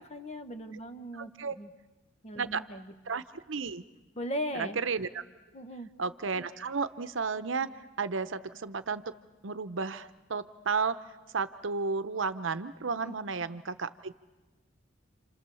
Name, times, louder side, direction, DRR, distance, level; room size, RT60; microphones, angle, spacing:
voice 1, 0.0-1.3 1.6-1.7 2.2-2.9 4.2-4.8 5.5-5.9 13.0-13.1, equal, 35° left, 9 dB, 1.2 m, -38 dB
voice 2, 1.1-1.6 2.4-2.6 3.1-3.8 4.6-5.2 6.0-7.7 8.0-9.1 9.4-11.0 11.3-14.1, right 5 dB, 70° right, 12 dB, 0.8 m, -33 dB
29.5 x 27.0 x 7.0 m, 1.2 s
head